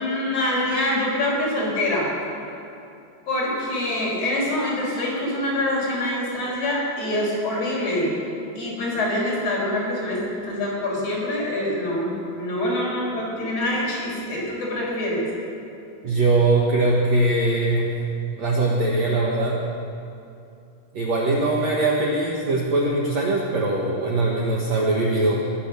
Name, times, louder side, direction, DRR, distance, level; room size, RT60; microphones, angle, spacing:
voice 1, 0.0-2.1 3.3-8.1 8.6-15.2, left 1 dB, 35° left, -5 dB, 5.2 m, -25 dB
voice 2, 16.0-17.9 18.4-19.6 20.9-25.4, right 2 dB, 80° right, -2 dB, 1.5 m, -21 dB
21.5 x 8.9 x 6.7 m, 2.7 s
omnidirectional pair, 5.1 m